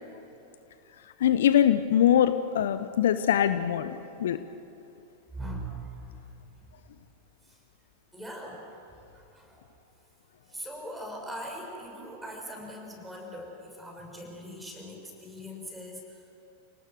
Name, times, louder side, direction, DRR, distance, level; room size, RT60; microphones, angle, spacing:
voice 1, 1.2-4.4, left 10 dB, 60° left, 12 dB, 0.8 m, -23 dB
voice 2, 5.3-6.1 6.5-6.6 7.4-7.6 8.1-8.8 9.1-9.6 10.5-16.2, right 1 dB, 5° right, 0 dB, 6.1 m, -41 dB
29.0 x 19.0 x 7.7 m, 2.9 s
figure-of-eight pair, 90°, 0 cm